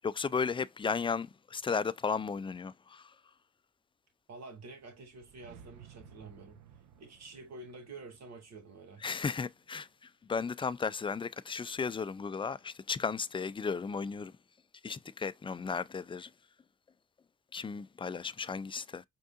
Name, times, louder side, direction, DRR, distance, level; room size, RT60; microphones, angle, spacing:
voice 1, 0.0-3.1 9.0-9.9 10.3-14.3 14.8-16.3 17.5-19.0, left 5 dB, 15° left, 0.4 m, -34 dB
voice 2, 4.3-6.6 7.0-9.0, right 3 dB, 60° right, 2.5 m, -49 dB
sound 1, 4.8-9.8, right 8 dB, 80° right, 0.9 m, -58 dB
5.3 x 3.7 x 2.4 m
cardioid pair, 90°, 30 cm